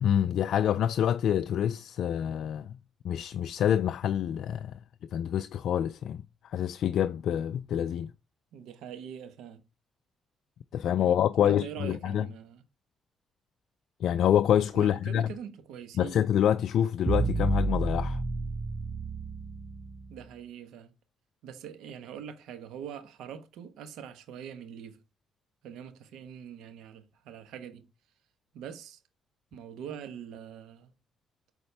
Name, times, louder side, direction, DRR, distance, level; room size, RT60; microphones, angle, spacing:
voice 1, 0.0-2.8 3.0-4.8 5.1-8.1 10.7-12.3 14.0-15.3 16.0-18.2, left 10 dB, 70° left, 0.3 m, -27 dB
voice 2, 8.5-9.6 11.0-12.6 14.7-16.2 20.1-20.9 21.4-25.0 25.6-27.9 28.5-29.0 29.5-30.9, right 8 dB, 90° right, 1.2 m, -43 dB
sound 1, 17.1-20.1, right 3 dB, 15° right, 0.7 m, -30 dB
7.0 x 4.2 x 3.3 m
cardioid pair, 90°, 0 cm